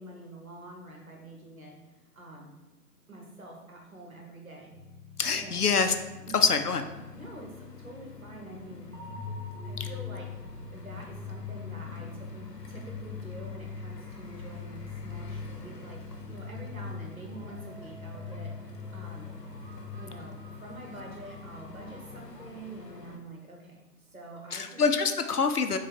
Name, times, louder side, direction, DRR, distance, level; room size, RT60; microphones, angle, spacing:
voice 1, 0.0-1.7 2.1-2.5 3.1-4.8 5.3-5.6 6.3-6.6 7.1-8.9 9.6-10.3 10.7-18.5 18.9-19.4 20.0-20.3 20.6-23.8 24.1-24.9, right 2 dB, 60° right, -1 dB, 1.2 m, -46 dB
sound 1, 4.7-22.2, left 5 dB, 40° right, 0.9 m, -48 dB
voice 2, 5.2-5.9 6.3-6.9 24.5-25.8, left 5 dB, 70° left, 7 dB, 0.5 m, -25 dB
sound 2, 6.7-23.2, left 2 dB, 85° left, 0.9 m, -49 dB
sound 3, 8.9-20.9, left 5 dB, 85° right, 1.3 m, -42 dB
3.7 x 2.9 x 4.6 m, 1.1 s
figure-of-eight pair, 165°, 48 cm